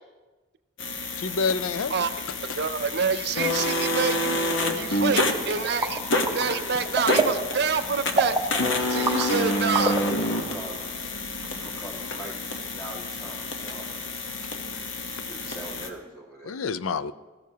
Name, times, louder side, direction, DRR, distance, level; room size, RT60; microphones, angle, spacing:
sound 1, 0.8-15.9, left 2 dB, 65° left, 1.0 m, -28 dB
voice 1, 1.2-2.4 16.4-17.1, left 5 dB, 85° left, 14 dB, 0.5 m, -28 dB
voice 2, 2.6-4.4 4.8-6.0 6.3-8.4 8.9-10.0, right 6 dB, 50° right, 11 dB, 0.4 m, -27 dB
sound 2, 5.5-10.5, right 2 dB, 10° right, 0.7 m, -29 dB
voice 3, 6.3-7.4 10.2-11.0 11.6-12.4 12.7-14.0 15.3-16.6, right 1 dB, 15° left, -3 dB, 1.9 m, -42 dB
17.0 x 13.5 x 2.8 m, 1.2 s
head